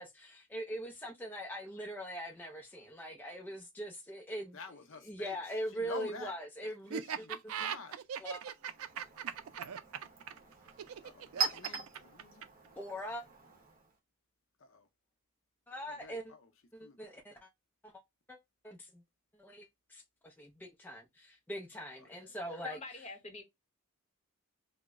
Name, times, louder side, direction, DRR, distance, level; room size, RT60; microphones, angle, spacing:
voice 1, 0.0-4.6 5.1-7.6 8.2-8.5 12.8-13.2 15.7-16.2 16.7-17.3 18.3-18.4 18.6-19.0 19.4-22.8, equal, 10° left, 0.4 m, -42 dB
voice 2, 4.5-5.4 5.7-6.3 6.6-8.1 11.0-12.5 14.6-14.9 15.9-16.5 16.8-17.1 22.0-22.6, left 4 dB, 65° left, 0.5 m, -49 dB
Laughter, 6.9-12.7, right 8 dB, 85° right, 0.4 m, -39 dB
Chink clink, 8.5-14.0, right 6 dB, 40° right, 0.9 m, -42 dB
voice 3, 22.6-23.4, left 3 dB, 30° left, 0.8 m, -45 dB
2.9 x 2.0 x 3.5 m
head